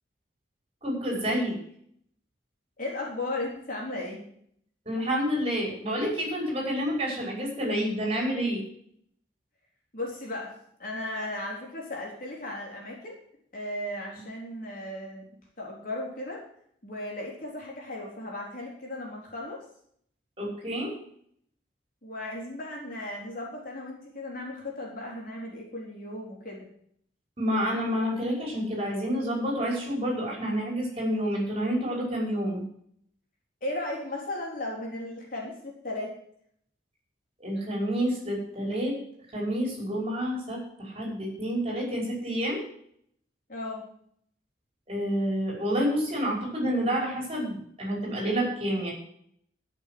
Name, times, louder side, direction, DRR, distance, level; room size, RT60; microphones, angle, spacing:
voice 1, 0.8-1.6 4.9-8.6 20.4-20.9 27.4-32.6 37.4-38.9 39.3-42.6 44.9-48.9, equal, 30° right, -2 dB, 5.7 m, -29 dB
voice 2, 2.8-4.2 9.9-13.2 13.5-15.2 15.6-16.4 16.8-19.7 22.0-26.7 33.6-36.2 43.5-43.9, left 1 dB, 45° left, -2 dB, 4.1 m, -36 dB
13.5 x 6.8 x 7.8 m, 0.66 s
head